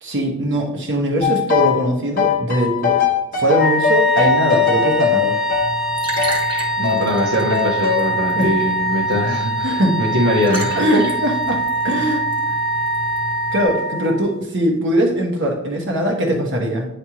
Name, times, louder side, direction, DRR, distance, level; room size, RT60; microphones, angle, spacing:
voice 1, 0.0-3.0 3.3-5.4 8.4-8.5 9.6-10.0 10.8-12.2 13.5-16.9, right 1 dB, 55° right, 1 dB, 1.2 m, -20 dB
sound 1, 1.2-1.9 2.2-6.4 6.8-7.1 7.5-8.1, left 7 dB, 40° left, 0.8 m, -20 dB
Wind instrument woodwind instrument, 3.5-14.3, right 1 dB, ahead, 0.3 m, -23 dB
Liquid, 5.5-13.6, right 1 dB, 25° right, 1.2 m, -33 dB
voice 2, 6.8-10.8, equal, 75° right, -5 dB, 1.2 m, -21 dB
9.7 x 3.3 x 3.0 m, 0.83 s
head